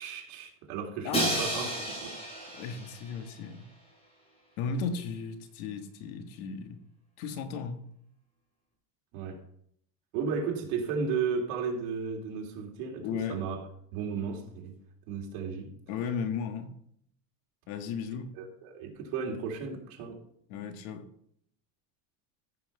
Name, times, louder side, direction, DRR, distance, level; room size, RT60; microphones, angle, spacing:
voice 1, 0.0-2.1 9.1-9.4 10.1-13.6 13.9-14.7 15.1-15.7 18.3-20.2, right 5 dB, 75° right, 3.2 m, -34 dB
voice 2, 1.0-1.5 2.5-3.6 4.6-6.8 7.2-7.8 13.0-13.4 15.9-16.7 17.7-18.3 20.5-21.1, left 6 dB, 75° left, 1.7 m, -35 dB
Crash cymbal, 1.1-3.1, right 1 dB, 15° left, 2.6 m, -32 dB
14.0 x 5.9 x 5.6 m
cardioid pair, 175°, 44 cm